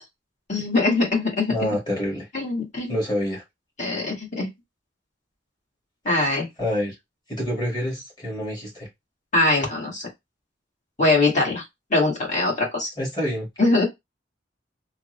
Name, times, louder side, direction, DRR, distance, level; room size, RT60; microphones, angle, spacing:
voice 1, 0.5-1.7 2.3-3.0 3.8-4.5 6.0-6.5 9.3-10.1 11.0-11.6 11.9-12.9 13.6-13.9, left 2 dB, 40° left, 1.4 m, -22 dB
voice 2, 1.5-2.3 2.9-3.4 6.1-7.0 7.3-8.9 13.0-13.5, equal, 25° left, 1.7 m, -27 dB
3.4 x 2.0 x 3.0 m
head